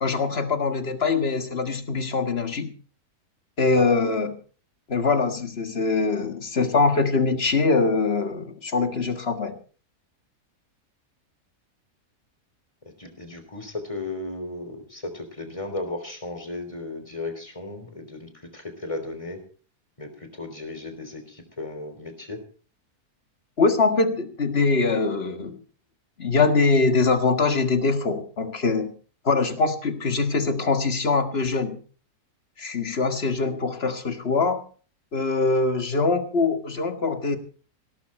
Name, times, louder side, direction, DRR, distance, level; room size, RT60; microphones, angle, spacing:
voice 1, 0.0-2.7 3.6-4.4 4.9-9.6 23.6-25.6 26.2-28.9 29.3-31.8 32.6-34.6 35.1-37.4, left 4 dB, 40° left, 8 dB, 1.8 m, -23 dB
voice 2, 12.9-19.4 20.0-22.4, left 2 dB, 20° left, 6 dB, 3.5 m, -35 dB
17.5 x 13.0 x 4.4 m, 0.40 s
omnidirectional pair, 1.7 m